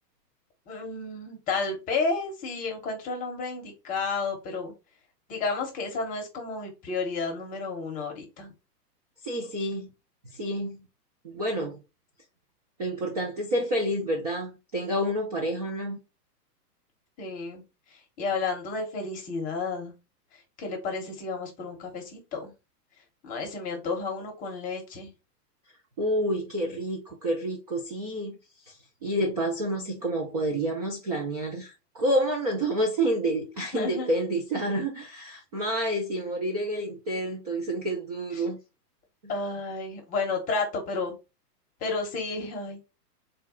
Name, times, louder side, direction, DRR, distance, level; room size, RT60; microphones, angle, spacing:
voice 1, 0.7-4.7 5.3-8.5 17.2-17.6 17.9-19.9 20.6-22.5 23.2-25.1 33.7-34.1 38.3-38.4 39.3-41.1 41.8-42.8, left 4 dB, 15° left, 0.8 m, -31 dB
voice 2, 9.2-9.9 10.3-10.8 11.2-11.8 12.8-16.0 26.0-28.4 28.7-28.8 29.0-38.6, right 1 dB, 25° right, 0.4 m, -29 dB
3.9 x 2.2 x 3.5 m
hypercardioid pair, 145°, 48 cm